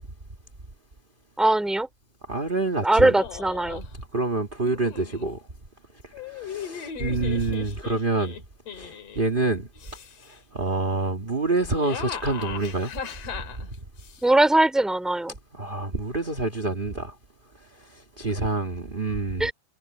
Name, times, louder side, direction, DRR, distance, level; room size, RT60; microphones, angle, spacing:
voice 1, 1.4-1.9 2.8-3.8 14.2-15.3 19.4-19.5, right 2 dB, ahead, 2.2 m, -20 dB
voice 2, 2.3-3.1 4.1-5.4 6.3-8.3 8.8-9.7 10.5-12.9 13.3-13.4 15.5-17.1 17.9-19.5, right 2 dB, 25° right, 1.3 m, -27 dB
sound 1, 3.2-3.9 4.6-5.3 6.1-9.3 9.8-10.4 11.5-14.2, left 7 dB, 55° left, 2.9 m, -38 dB
omnidirectional pair, 3.6 m